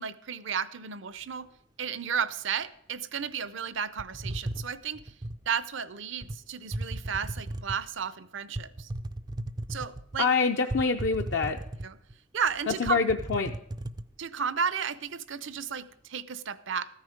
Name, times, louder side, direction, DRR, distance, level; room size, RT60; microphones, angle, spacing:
voice 1, 0.0-1.5 1.8-5.0 5.5-8.9 9.7-10.3 11.8-12.0 12.3-13.0 14.2-16.9, right 7 dB, 65° right, 15 dB, 0.6 m, -33 dB
sound 1, 4.0-5.4 6.2-6.4 6.7-7.9 8.5-10.2 10.7-12.1 12.5-12.6 12.9-14.1, right 1 dB, 20° right, 0.3 m, -36 dB
voice 2, 10.2-11.6 12.7-13.5, left 4 dB, 55° left, 4 dB, 0.5 m, -26 dB
14.0 x 9.7 x 5.1 m, 0.77 s
head